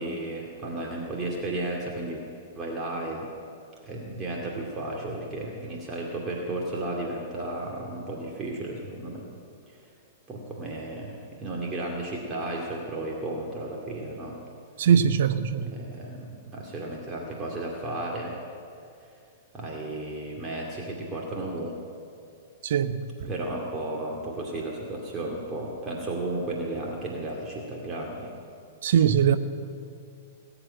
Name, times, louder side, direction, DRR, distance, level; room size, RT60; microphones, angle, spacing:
voice 1, 0.0-2.2 2.5-3.3 3.8-9.3 10.3-14.4 15.6-18.4 19.5-21.7 23.3-28.3, right 2 dB, 20° right, -2 dB, 2.4 m, -33 dB
voice 2, 14.8-15.7 22.6-23.0 28.8-29.4, right 8 dB, 55° right, 9 dB, 0.9 m, -21 dB
20.0 x 8.0 x 8.9 m, 2.5 s
figure-of-eight pair, 105°, 0 cm